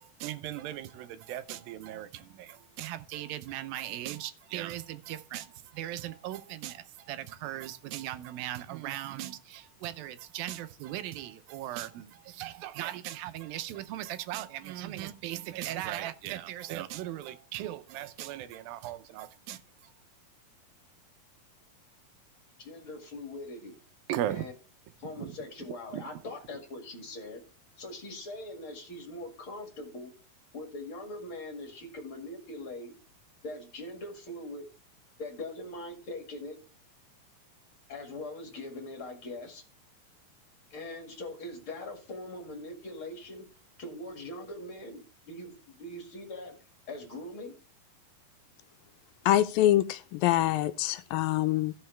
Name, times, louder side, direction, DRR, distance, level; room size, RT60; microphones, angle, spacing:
voice 1, 0.2-5.5 5.7-19.6 24.1-24.4 25.9-26.0, right 13 dB, 85° right, 2.5 m, -38 dB
voice 2, 22.6-23.7 24.3-24.5 25.0-27.4 27.8-30.1 30.5-32.9 33.4-34.6 35.2-36.6 37.9-39.6 40.7-43.5 43.8-46.5 46.9-47.5, left 2 dB, 40° left, 2.4 m, -41 dB
voice 3, 49.3-51.7, left 13 dB, 85° left, 2.4 m, -25 dB
15.5 x 5.7 x 3.3 m
omnidirectional pair, 4.1 m